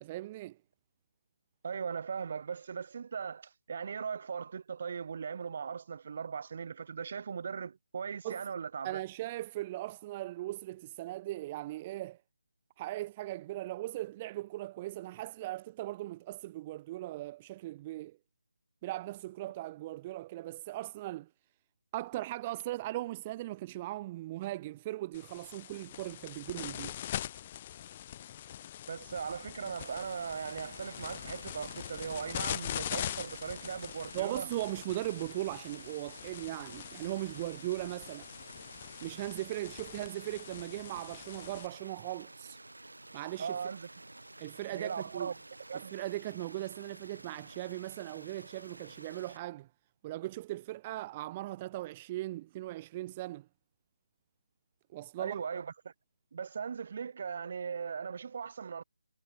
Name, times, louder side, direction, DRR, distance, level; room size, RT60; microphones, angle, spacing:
voice 1, 0.0-0.6 8.2-8.4 8.8-12.2 12.8-18.2 18.8-21.3 21.9-27.0 34.1-38.3 39.0-42.6 43.1-43.6 44.4-45.3 45.7-49.7 50.0-53.5 54.9-55.4, right 16 dB, 20° right, 0.6 m, -39 dB
voice 2, 1.6-9.0 28.9-34.5 43.4-43.9 44.7-45.3 45.7-45.9 55.2-55.9 56.3-58.8, right 6 dB, 45° right, 1.2 m, -39 dB
sound 1, 25.1-41.7, left 11 dB, 30° left, 0.5 m, -43 dB
sound 2, 29.8-49.4, right 2 dB, 80° right, 5.4 m, -52 dB
figure-of-eight pair, 155°, 0 cm